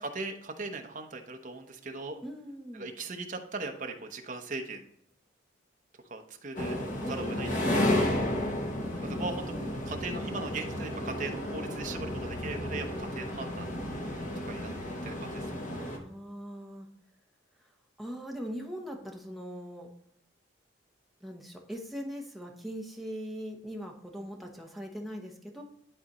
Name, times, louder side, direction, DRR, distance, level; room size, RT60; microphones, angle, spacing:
voice 1, 0.0-2.2 2.7-4.8 6.1-6.8 7.1-8.0 9.0-9.5 9.9-13.7 14.4-14.7 15.0-15.6, right 3 dB, 40° right, 4 dB, 0.9 m, -39 dB
voice 2, 2.2-2.9 7.0-7.9 9.5-9.7 15.8-16.9 17.6-17.7 18.0-19.9 21.2-25.6, equal, ahead, 0 dB, 1.0 m, -41 dB
sound 1, 6.6-16.0, left 1 dB, 40° left, 1.1 m, -32 dB
11.0 x 4.1 x 3.1 m, 0.72 s
head